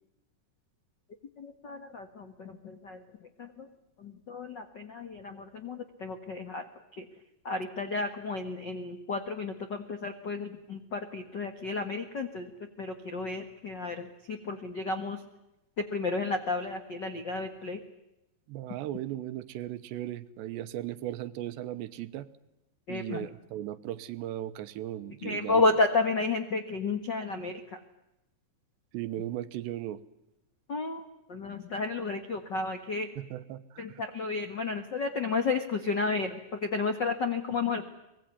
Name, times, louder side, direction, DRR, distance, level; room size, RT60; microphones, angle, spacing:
voice 1, 1.4-3.7 4.0-6.6 6.9-7.1 7.4-12.5 12.8-15.2 15.8-17.8 22.9-23.3 25.2-27.8 30.7-33.1 33.8-37.9, left 3 dB, 90° left, 8 dB, 0.9 m, -32 dB
voice 2, 18.5-22.3 22.9-25.6 28.9-30.0 33.2-34.0, right 13 dB, 85° right, 13 dB, 3.3 m, -37 dB
25.0 x 20.5 x 9.5 m, 0.94 s
omnidirectional pair, 4.9 m